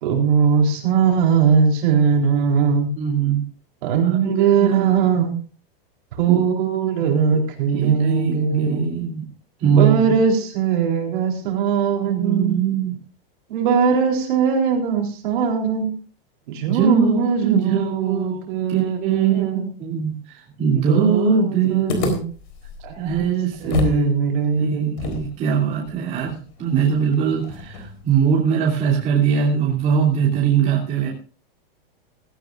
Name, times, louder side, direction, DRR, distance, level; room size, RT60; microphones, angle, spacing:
voice 1, 0.0-2.9 3.8-5.4 6.1-8.9 9.6-12.6 13.5-15.9 16.5-19.7 20.9-22.2 22.8-23.2 23.6-24.9, right 6 dB, 55° right, 1 dB, 3.9 m, -20 dB
voice 2, 3.0-3.4 4.0-5.2 6.3-6.4 7.0-7.4 7.7-9.3 9.6-10.1 12.0-12.9 16.7-18.4 18.7-22.0 23.0-24.2 24.6-31.1, right 7 dB, 25° right, -3 dB, 2.9 m, -21 dB
sound 1, 21.9-24.1 24.3-24.4 25.0-28.1, left 4 dB, 50° left, 4.0 m, -29 dB
16.5 x 16.0 x 2.5 m, 0.39 s
supercardioid pair, 170°, 30 cm